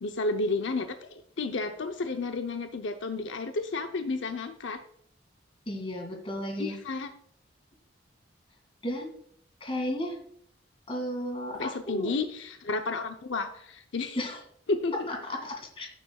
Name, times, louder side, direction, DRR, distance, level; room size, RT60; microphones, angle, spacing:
voice 1, 0.0-4.8 6.6-7.1 11.5-14.3 14.7-15.1, left 3 dB, 80° left, 6 dB, 0.7 m, -32 dB
voice 2, 5.7-6.8 8.8-9.1 9.6-10.2 10.9-12.1 14.2-14.4 15.1-15.9, left 1 dB, 30° left, 2 dB, 2.3 m, -33 dB
15.0 x 7.1 x 2.3 m, 0.65 s
head